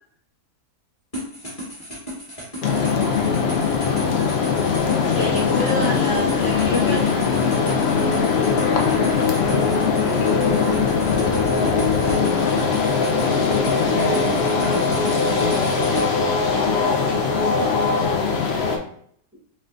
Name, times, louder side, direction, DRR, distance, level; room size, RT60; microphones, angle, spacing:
sound 1, 1.1-16.0, equal, 25° left, 1.7 m, -34 dB
sound 2, 2.6-18.8, left 5 dB, 65° left, 0.6 m, -20 dB
voice 1, 5.1-7.2 16.5-17.7, left 2 dB, 50° left, -6 dB, 1.5 m, -29 dB
voice 2, 10.3-10.8 11.1-13.0 13.8-15.8, equal, 10° right, -4 dB, 0.6 m, -32 dB
5.3 x 2.6 x 2.5 m, 0.63 s
omnidirectional pair, 1.7 m